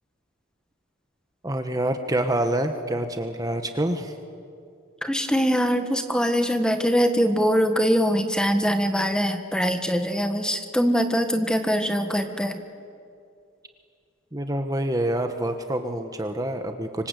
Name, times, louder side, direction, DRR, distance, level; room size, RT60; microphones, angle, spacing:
voice 1, 1.4-4.1 14.3-17.1, right 1 dB, 15° right, 6 dB, 1.3 m, -26 dB
voice 2, 5.0-12.6, equal, 5° left, 7 dB, 1.5 m, -23 dB
25.5 x 25.5 x 8.4 m, 2.4 s
head